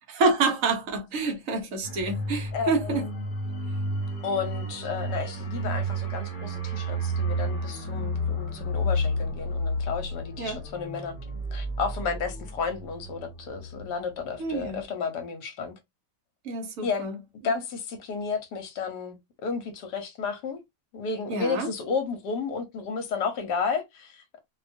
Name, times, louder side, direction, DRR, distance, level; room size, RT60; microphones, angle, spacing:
voice 1, 0.1-3.1 10.4-10.6 14.4-14.8 16.4-17.2 21.3-21.7, right 3 dB, 60° right, 0.9 m, -27 dB
sound 1, 1.8-14.2 14.5-14.7, equal, 35° left, 1.0 m, -31 dB
voice 2, 2.5-3.1 4.2-11.2 11.5-15.7 16.8-17.1 17.4-20.6 20.9-24.4, left 5 dB, 75° left, 1.3 m, -32 dB
2.7 x 2.3 x 2.5 m
omnidirectional pair, 1.8 m